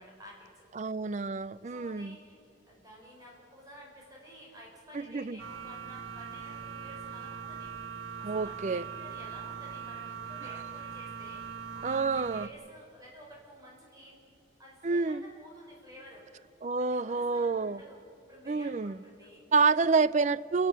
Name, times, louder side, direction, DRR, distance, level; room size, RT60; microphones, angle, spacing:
voice 1, 0.0-0.7 1.7-2.4 2.7-14.2 14.6-16.3 16.8-18.0 18.3-20.0, equal, 20° right, 5.8 m, -52 dB
voice 2, 0.8-2.2 4.9-5.4 8.2-8.8 11.8-12.5 14.8-15.2 16.6-17.8 18.5-19.0 19.5-20.7, right 4 dB, 35° right, 0.4 m, -28 dB
sound 1, 5.4-12.5, right 7 dB, 90° right, 1.3 m, -41 dB
28.0 x 12.5 x 9.6 m
head